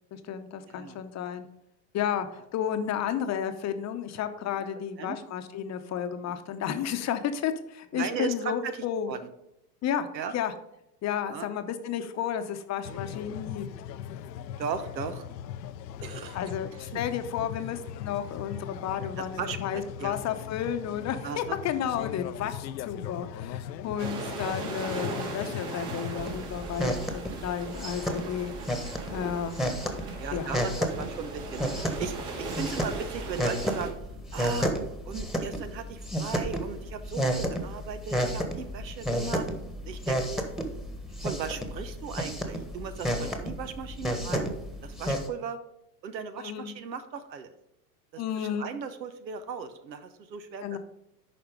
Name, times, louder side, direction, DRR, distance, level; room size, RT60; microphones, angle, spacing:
voice 1, 0.1-1.5 1.9-9.1 9.8-10.1 10.3-10.5 11.0-13.7 16.3-29.6 30.3-30.6 46.4-46.7 48.2-48.7 50.6-50.8, left 9 dB, 35° left, 9 dB, 0.9 m, -32 dB
voice 2, 0.7-1.0 4.6-4.7 5.0-5.2 6.3-6.4 7.9-9.3 10.1-10.4 11.2-11.5 12.9-13.0 14.6-15.3 16.0-16.4 16.7-17.0 17.4-17.5 18.9-20.1 21.2-21.6 30.1-34.0 34.3-34.7 35.0-39.5 39.8-40.2 41.2-44.5 44.8-45.6 46.0-47.5 48.1-50.8, right 6 dB, 90° right, 10 dB, 1.1 m, -37 dB
sound 1, 12.8-26.3, left 10 dB, 80° left, 0.7 m, -39 dB
sound 2, 24.0-33.9, right 3 dB, 65° right, 2.6 m, -39 dB
sound 3, 26.2-45.3, equal, ahead, 1.3 m, -32 dB
11.0 x 4.3 x 5.1 m, 0.83 s
hypercardioid pair, 100°, 50 cm